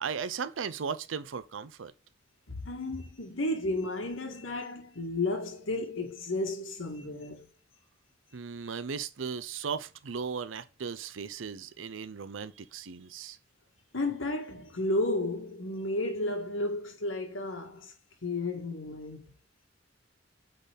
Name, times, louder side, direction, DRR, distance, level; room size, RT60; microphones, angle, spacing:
voice 1, 0.0-1.9 8.3-13.4, right 6 dB, 80° right, 0.6 m, -36 dB
voice 2, 2.5-7.5 13.9-17.9 18.2-19.3, left 2 dB, 90° left, 1.8 m, -33 dB
8.2 x 4.0 x 3.4 m
head